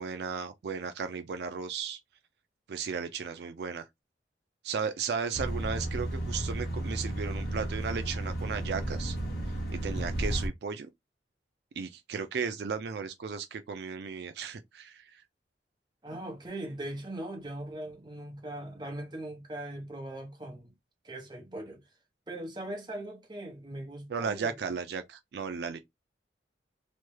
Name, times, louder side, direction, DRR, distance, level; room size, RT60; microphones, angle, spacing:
voice 1, 0.0-2.0 2.7-3.9 4.6-9.2 9.7-10.9 11.8-15.2 24.1-25.8, right 6 dB, 70° right, 0.4 m, -35 dB
sound 1, 5.3-10.5, right 1 dB, 55° left, 1.2 m, -33 dB
voice 2, 16.0-20.7 21.0-21.8 22.3-24.5, right 1 dB, 25° right, 0.9 m, -40 dB
3.1 x 2.2 x 3.1 m
head